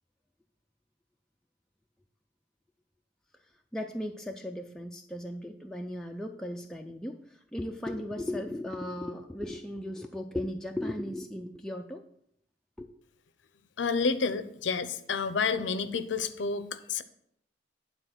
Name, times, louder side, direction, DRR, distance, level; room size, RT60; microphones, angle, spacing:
voice 1, 3.7-12.0 12.8-12.9, left 1 dB, 5° left, 2 dB, 0.3 m, -36 dB
voice 2, 13.8-17.0, left 5 dB, 80° left, 12 dB, 0.6 m, -30 dB
9.0 x 3.9 x 5.9 m, 0.72 s
head